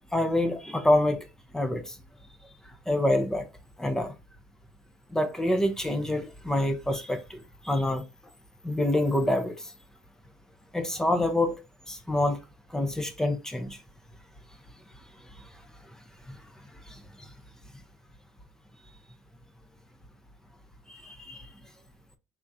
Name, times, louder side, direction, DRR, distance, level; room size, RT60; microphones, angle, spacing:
voice 1, 0.1-1.3 1.5-2.0 2.9-3.4 3.8-4.1 5.1-8.0 8.6-9.6 10.7-11.6 11.9-12.4 12.7-13.8 16.3-16.4 16.9-17.0 20.9-21.4, left 1 dB, 10° left, 0.6 m, -26 dB
3.5 x 3.5 x 2.7 m
cardioid pair, 110°, 7 cm